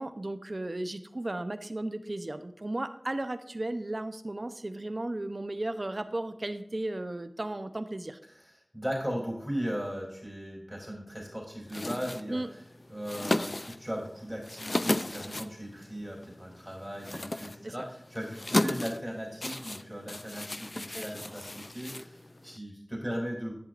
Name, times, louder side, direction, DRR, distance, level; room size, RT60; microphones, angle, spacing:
voice 1, 0.0-8.2 12.3-12.5 17.6-17.7 20.9-21.2, right 1 dB, 50° right, 10 dB, 0.7 m, -35 dB
voice 2, 8.3-12.6 12.9-23.5, equal, 5° right, -2 dB, 3.1 m, -37 dB
sound 1, 11.7-22.6, left 1 dB, 50° left, 0.4 m, -35 dB
11.0 x 10.5 x 2.6 m, 0.70 s
wide cardioid pair, 50°, 0 cm